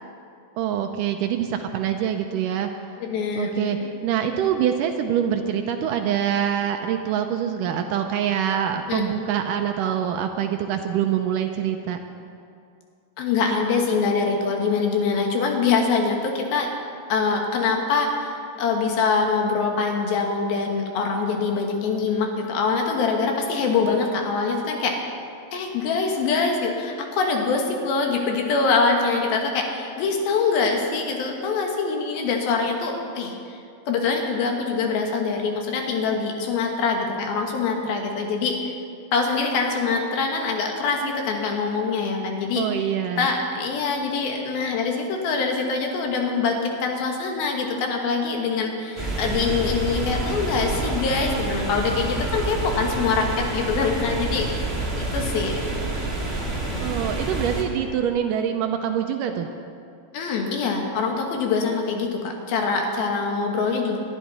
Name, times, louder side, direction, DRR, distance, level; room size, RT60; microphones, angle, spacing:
voice 1, 0.6-2.7 3.4-12.0 42.6-43.3 56.8-59.5, right 9 dB, 80° right, 5 dB, 2.0 m, -25 dB
voice 2, 3.0-3.9 8.9-9.1 13.2-16.7 17.1-24.9 25.5-33.6 33.9-38.7 39.1-42.7 43.2-54.5 55.0-55.6 60.1-64.0, left 4 dB, 80° left, 2 dB, 3.4 m, -24 dB
sound 1, 49.0-57.6, right 2 dB, 20° right, 1.9 m, -28 dB
21.0 x 12.0 x 4.2 m, 2.5 s
omnidirectional pair, 4.2 m